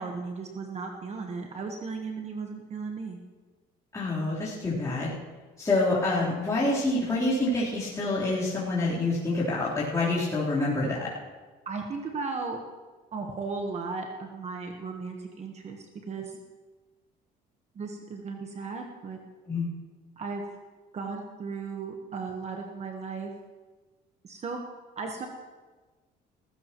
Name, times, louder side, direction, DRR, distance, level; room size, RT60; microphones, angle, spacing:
voice 1, 0.0-3.2 11.6-12.6 13.1-16.4 17.7-19.2 20.2-20.4 20.9-23.3 24.2-24.6 25.0-25.3, right 4 dB, 40° right, 3 dB, 1.3 m, -36 dB
voice 2, 3.9-5.1 5.6-11.1 19.5-19.7, left 2 dB, 20° left, -10 dB, 3.7 m, -27 dB
18.5 x 15.5 x 3.1 m, 1.3 s
cardioid pair, 110°, 17 cm